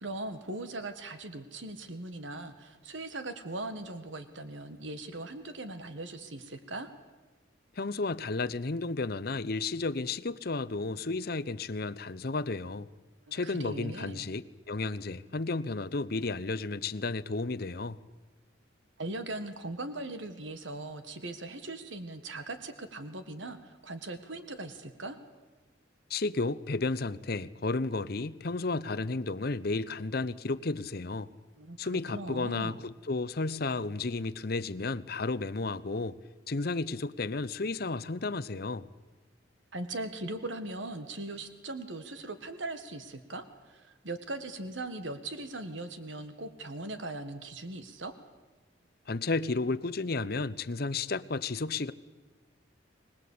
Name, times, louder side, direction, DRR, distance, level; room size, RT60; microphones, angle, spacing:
voice 1, 0.0-6.9 13.4-14.3 19.0-25.2 31.6-31.8 32.1-32.8 39.7-48.1, right 2 dB, 75° right, 1.7 m, -39 dB
voice 2, 7.8-12.9 13.3-18.0 26.1-31.3 31.8-36.2 36.5-38.9 49.1-51.9, left 3 dB, 55° left, 0.8 m, -32 dB
25.0 x 19.5 x 8.6 m
head